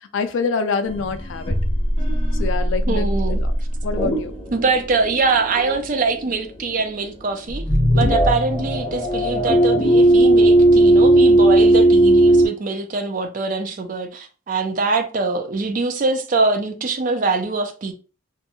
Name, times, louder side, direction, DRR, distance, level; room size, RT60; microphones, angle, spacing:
voice 1, 0.1-1.6 2.3-3.5 3.8-4.3 7.9-8.1, left 4 dB, 65° left, 0.4 m, -26 dB
sound 1, 0.9-6.3 6.6-7.1 7.5-12.5, right 1 dB, 30° left, 0.7 m, -17 dB
voice 2, 2.9-3.4 4.5-7.6 7.9-17.9, right 3 dB, 40° right, 0.4 m, -23 dB
2.6 x 2.2 x 2.7 m
head